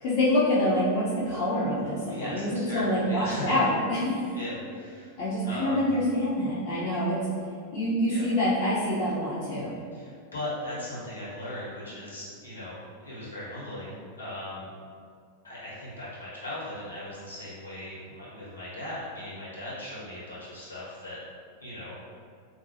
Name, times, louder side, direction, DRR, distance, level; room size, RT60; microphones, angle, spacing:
voice 1, 0.0-4.2 5.2-7.3 7.7-9.7, left 1 dB, 45° left, -8 dB, 0.5 m, -26 dB
voice 2, 2.1-3.5 4.3-5.2 5.4-5.9 8.1-8.2 9.9-14.7 15.4-21.2 21.6-22.0, left 1 dB, 80° left, -9 dB, 1.0 m, -38 dB
2.5 x 2.2 x 2.7 m, 2.2 s
figure-of-eight pair, 90°, 0 cm